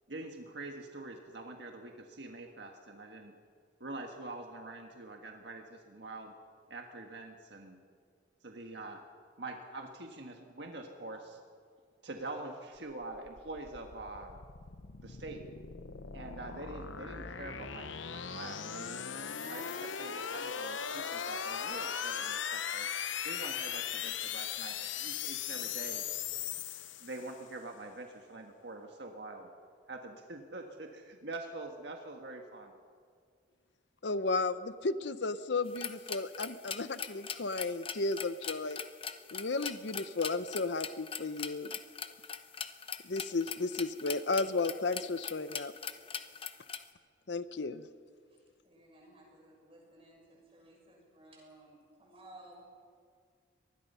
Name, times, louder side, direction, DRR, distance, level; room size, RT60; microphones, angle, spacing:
voice 1, 0.1-3.3 3.8-6.3 6.7-7.8 8.4-9.0 9.4-11.4 12.0-14.4 15.0-15.5 16.1-19.0 19.5-22.9 23.2-26.1 27.0-29.5 29.9-32.7, right 2 dB, 65° right, 3 dB, 1.6 m, -45 dB
sound 1, 13.0-27.4, left 8 dB, 85° left, 1.0 m, -39 dB
voice 2, 34.0-38.8 39.3-41.7 43.0-45.7 47.3-47.9, left 3 dB, 65° left, 13 dB, 0.8 m, -34 dB
sound 2, 35.7-46.8, left 7 dB, 30° left, 0.9 m, -42 dB
voice 3, 48.3-52.7, right 1 dB, 30° right, -2 dB, 6.8 m, -57 dB
24.5 x 19.5 x 5.6 m, 2.2 s
head